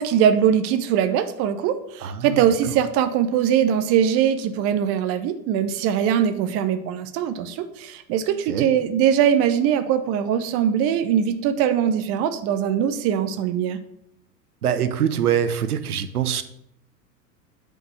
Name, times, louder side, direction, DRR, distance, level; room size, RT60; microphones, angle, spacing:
voice 1, 0.0-13.8, right 9 dB, 30° right, 10 dB, 0.8 m, -21 dB
voice 2, 2.0-2.7 8.5-8.7 14.6-16.4, right 9 dB, 60° right, 11 dB, 1.0 m, -24 dB
9.8 x 5.4 x 8.1 m, 0.75 s
figure-of-eight pair, 90°, 49 cm